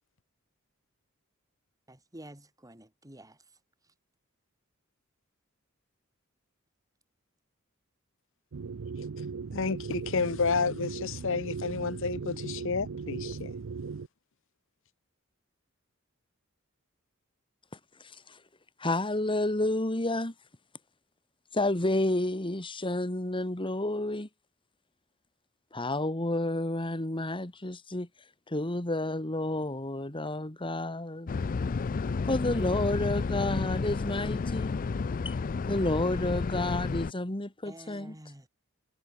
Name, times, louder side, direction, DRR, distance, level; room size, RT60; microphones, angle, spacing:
voice 1, 1.9-3.4 37.6-38.5, right 1 dB, 15° right, 3.5 m, -49 dB
sound 1, 8.5-14.1, right 5 dB, 70° right, 0.5 m, -38 dB
voice 2, 9.5-13.5, left 4 dB, 65° left, 0.9 m, -30 dB
voice 3, 18.0-18.4 18.8-20.3 21.5-24.3 25.7-28.1 28.5-31.3 32.3-34.7 35.2-35.3 35.7-38.2, left 1 dB, 25° left, 2.1 m, -30 dB
sound 2, 31.3-37.1, left 4 dB, 40° left, 0.4 m, -31 dB
head